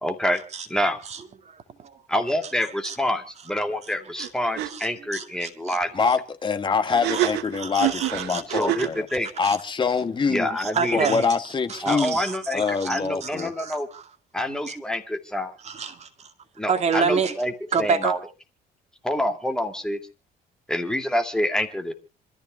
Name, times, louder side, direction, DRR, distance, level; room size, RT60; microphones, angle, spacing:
voice 1, 0.0-0.4 0.7-1.0 2.1-5.9 8.5-9.3 10.3-11.1 11.8-13.9 14.3-15.5 16.6-17.5 17.8-18.2 19.0-20.0 20.7-21.9, left 1 dB, 5° left, 2.5 m, -27 dB
voice 2, 1.1-2.0 2.6-3.0 4.2-4.3 4.7-5.8 7.1-7.2 7.6-8.4 9.4-9.6 10.6-11.4 11.7-14.1 15.6-16.3 16.7-17.3 17.7-18.1, right 6 dB, 40° right, 2.2 m, -29 dB
sound 1, 4.2-4.3 4.6-4.7 6.9-9.0, right 15 dB, 75° right, 1.8 m, -26 dB
voice 3, 5.9-9.1 9.4-10.6 10.9-12.2 12.5-13.5, left 5 dB, 25° left, 1.6 m, -25 dB
27.0 x 13.5 x 2.4 m
cardioid pair, 120°, 17 cm